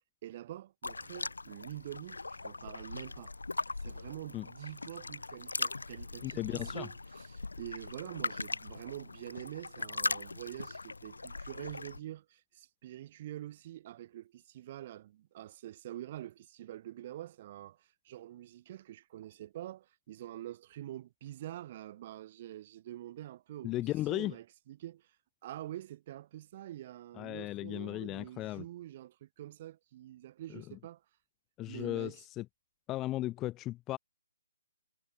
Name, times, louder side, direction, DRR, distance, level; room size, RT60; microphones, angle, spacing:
voice 1, 0.2-3.3 3.8-25.2 25.4-31.0 31.7-32.3, right 13 dB, 35° right, 1.7 m, -46 dB
sound 1, 0.8-12.0, left 3 dB, 80° left, 0.3 m, -40 dB
voice 2, 6.2-6.9 23.6-24.3 27.2-28.6 31.6-32.4 32.9-34.0, left 16 dB, 20° left, 0.8 m, -36 dB
figure-of-eight pair, 145°, 0 cm